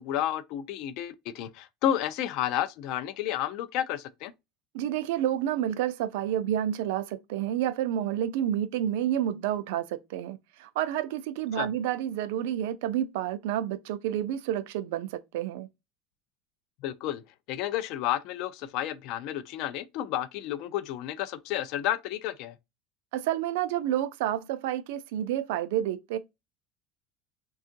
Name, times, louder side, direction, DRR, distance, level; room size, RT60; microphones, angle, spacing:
voice 1, 0.0-4.3 11.5-11.7 16.8-17.2 17.5-22.6, left 11 dB, 50° left, 0.3 m, -31 dB
voice 2, 4.7-15.7 23.1-26.2, right 11 dB, 80° right, 0.4 m, -29 dB
3.6 x 2.3 x 2.5 m
cardioid pair, 165°, 0 cm